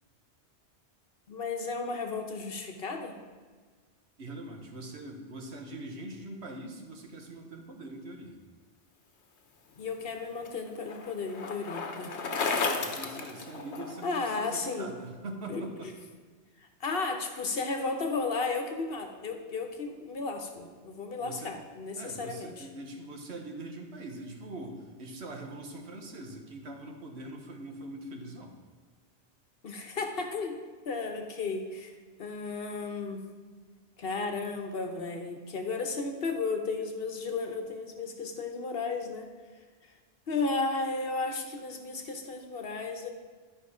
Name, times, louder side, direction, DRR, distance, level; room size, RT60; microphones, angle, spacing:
voice 1, 1.3-3.2 9.8-12.1 14.0-14.9 15.5-16.0 16.8-22.7 29.6-30.6 30.8-31.9 32.2-33.3 34.0-39.3 39.8-39.9 40.3-43.1, left 4 dB, 60° left, 4 dB, 1.1 m, -34 dB
voice 2, 4.2-8.4 12.5-15.9 21.2-21.5 22.0-28.6, right 2 dB, 75° right, 3 dB, 1.4 m, -43 dB
Bicycle, 9.8-14.2, left 4 dB, 85° left, 1.2 m, -34 dB
12.0 x 5.2 x 4.9 m, 1.5 s
omnidirectional pair, 1.1 m